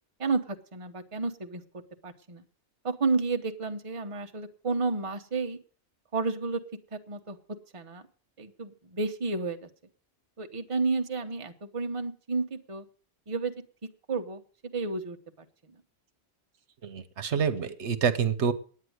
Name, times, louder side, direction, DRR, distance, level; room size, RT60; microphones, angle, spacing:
voice 1, 0.2-1.6 2.0-2.4 2.8-5.6 6.1-6.6 6.9-7.4 7.7-8.0 8.4-9.7 10.4-12.8 13.3-13.5 14.1-14.4 14.7-15.2, right 3 dB, 30° right, 5 dB, 1.0 m, -31 dB
voice 2, 16.8-18.5, right 6 dB, 75° right, 11 dB, 1.2 m, -27 dB
9.6 x 9.5 x 7.9 m, 0.42 s
omnidirectional pair, 1.2 m